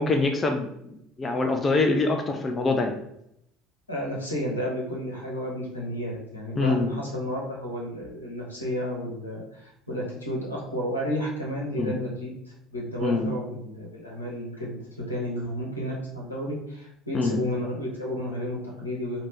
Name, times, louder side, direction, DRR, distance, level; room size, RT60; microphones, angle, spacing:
voice 1, 0.0-3.0 6.6-7.0 11.8-12.0 13.0-13.3 17.1-17.4, left 3 dB, 30° left, 4 dB, 0.6 m, -25 dB
voice 2, 3.9-19.2, equal, 85° left, -3 dB, 1.2 m, -32 dB
4.8 x 2.9 x 3.6 m, 0.77 s
figure-of-eight pair, 60°, 0 cm